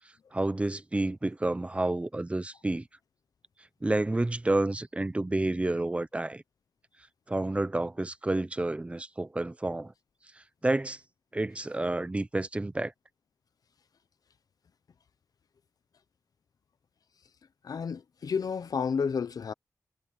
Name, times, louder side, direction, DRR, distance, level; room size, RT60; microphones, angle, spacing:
voice 1, 0.3-2.8 3.8-6.4 7.3-9.9 10.6-11.0 11.3-12.9, right 2 dB, 20° right, 0.8 m, -29 dB
voice 2, 17.6-19.5, left 6 dB, 70° left, 0.8 m, -31 dB
wide cardioid pair, 125°, 7 cm